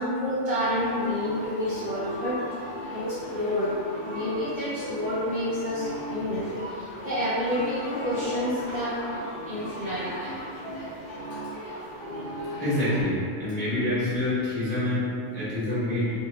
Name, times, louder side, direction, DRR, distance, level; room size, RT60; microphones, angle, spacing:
voice 1, 0.0-2.4 2.9-3.7 4.0-8.9 9.5-10.1 11.5-11.6, left 1 dB, 45° right, -11 dB, 0.7 m, -29 dB
sound 1, 0.7-13.0, equal, 55° left, 0.7 m, -37 dB
voice 2, 12.6-15.1 15.3-16.1, left 1 dB, 10° left, -11 dB, 0.6 m, -26 dB
2.6 x 2.5 x 2.9 m, 2.4 s
omnidirectional pair, 1.4 m